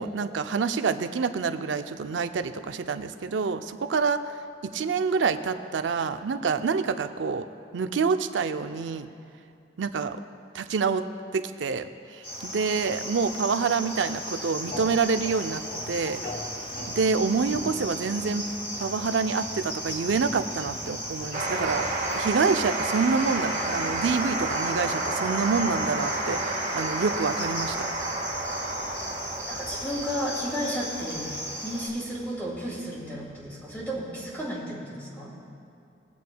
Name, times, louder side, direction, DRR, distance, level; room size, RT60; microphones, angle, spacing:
voice 1, 0.0-4.4 4.6-7.5 7.7-9.1 9.8-10.2 10.5-11.1 11.3-16.2 16.9-18.5 18.8-27.9, right 5 dB, 80° right, 9 dB, 0.5 m, -27 dB
Cricket, 12.2-31.9, equal, 30° left, 1.7 m, -36 dB
sound 1, 14.6-22.0, left 1 dB, 55° left, 2.4 m, -43 dB
sound 2, 21.3-34.3, right 2 dB, 45° right, 1.4 m, -31 dB
voice 2, 29.5-35.3, equal, 10° left, -7 dB, 2.2 m, -33 dB
21.0 x 8.4 x 2.3 m, 2.5 s
head